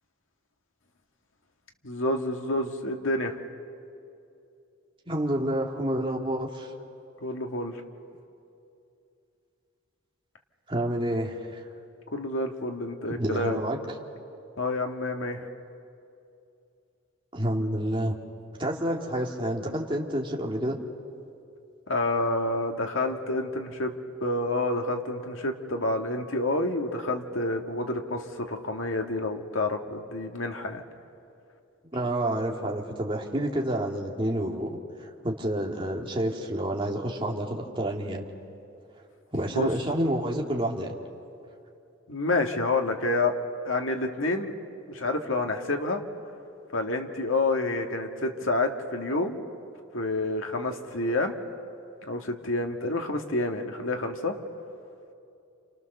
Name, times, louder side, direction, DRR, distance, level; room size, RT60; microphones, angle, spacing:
voice 1, 1.8-3.4 7.2-7.8 12.1-13.6 14.6-15.5 21.9-23.9 24.2-30.8 39.6-39.7 42.1-43.3 43.7-44.5 44.9-46.0 46.7-49.4 49.9-51.4 52.1-54.4, left 2 dB, 85° left, 3 dB, 2.0 m, -28 dB
voice 2, 5.1-6.7 10.7-11.6 13.1-13.8 17.3-18.2 18.6-20.8 31.9-34.8 35.2-38.2 39.3-40.9, right 1 dB, 25° right, -1 dB, 2.4 m, -29 dB
29.0 x 28.5 x 6.8 m, 2.6 s
head